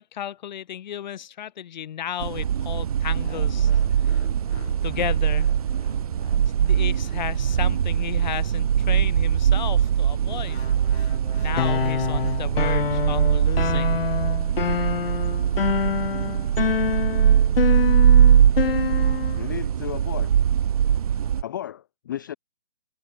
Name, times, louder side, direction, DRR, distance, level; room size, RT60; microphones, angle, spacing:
voice 1, 0.0-4.2 4.8-5.5 6.6-10.6 11.4-14.0, left 10 dB, 45° left, 3.7 m, -34 dB
sound 1, 2.2-21.4, right 9 dB, 35° right, 0.5 m, -21 dB
sound 2, 3.2-9.7 10.5-12.8, left 4 dB, 75° left, 4.3 m, -44 dB
sound 3, 11.6-19.4, left 7 dB, 60° left, 1.4 m, -26 dB
voice 2, 19.4-20.3 21.4-22.4, left 11 dB, 20° left, 0.5 m, -34 dB
figure-of-eight pair, 145°, 32 cm